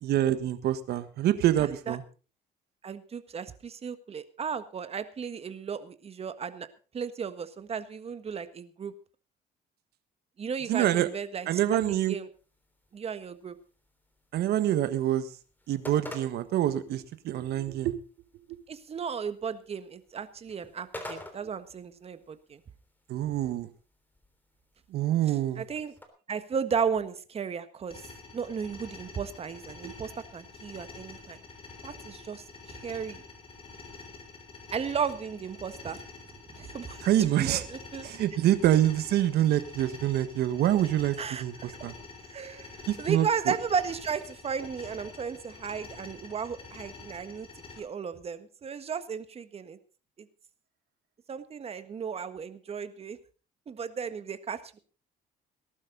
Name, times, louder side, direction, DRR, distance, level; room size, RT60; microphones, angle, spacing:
voice 1, 0.0-2.0 10.6-11.1 11.4-12.2 14.3-15.3 15.7-18.0 18.5-18.6 23.1-23.7 24.9-25.6 29.8-29.9 37.0-37.6 38.0-41.9 42.9-43.5, right 12 dB, 70° right, 12 dB, 1.5 m, -26 dB
voice 2, 1.6-2.0 2.8-6.7 6.9-8.9 10.4-12.3 12.9-13.5 18.7-22.6 25.6-25.9 26.3-31.4 31.8-33.2 34.7-36.0 36.5-37.1 37.3-38.1 41.2-41.8 42.3-47.5 47.8-49.8 50.2-50.3 51.3-53.2 53.7-54.8, right 6 dB, 35° right, 11 dB, 1.5 m, -35 dB
sound 1, 12.3-26.1, left 1 dB, 10° left, 3.3 m, -50 dB
sound 2, 27.9-47.8, left 4 dB, 30° left, 6.1 m, -47 dB
18.5 x 12.0 x 4.0 m, 0.35 s
cardioid pair, 110°, 17 cm